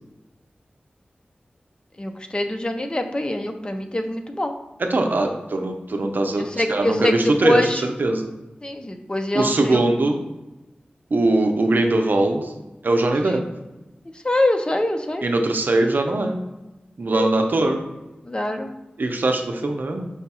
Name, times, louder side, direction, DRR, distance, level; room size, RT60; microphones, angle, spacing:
voice 1, 2.0-4.6 6.4-7.8 8.6-9.9 13.3-13.4 14.2-15.2 17.1-17.3 18.2-18.7, left 1 dB, 25° left, 6 dB, 0.4 m, -24 dB
voice 2, 4.8-8.3 9.3-10.2 11.1-12.5 12.8-13.4 15.2-16.4 17.0-17.8 19.0-20.1, right 2 dB, 65° right, 4 dB, 0.5 m, -21 dB
4.9 x 2.3 x 4.1 m, 1.0 s
wide cardioid pair, 60°, 3 cm